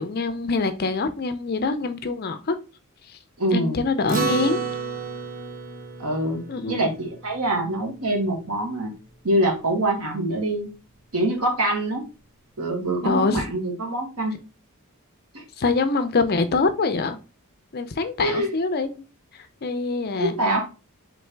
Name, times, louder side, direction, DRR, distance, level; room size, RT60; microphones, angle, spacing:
voice 1, 0.0-2.5 3.1-3.2 3.5-4.6 6.5-6.9 13.0-13.4 15.6-17.2 17.7-19.0 19.3-20.4, left 3 dB, 45° left, 0.5 m, -24 dB
voice 2, 3.4-3.8 6.0-8.9 9.2-10.7 11.1-12.0 12.6-14.3 15.3-15.4 18.2-18.5 20.2-20.6, right 1 dB, 85° right, 1.2 m, -24 dB
Acoustic guitar, 4.1-8.8, right 5 dB, 40° right, 0.6 m, -31 dB
4.0 x 3.2 x 3.3 m
head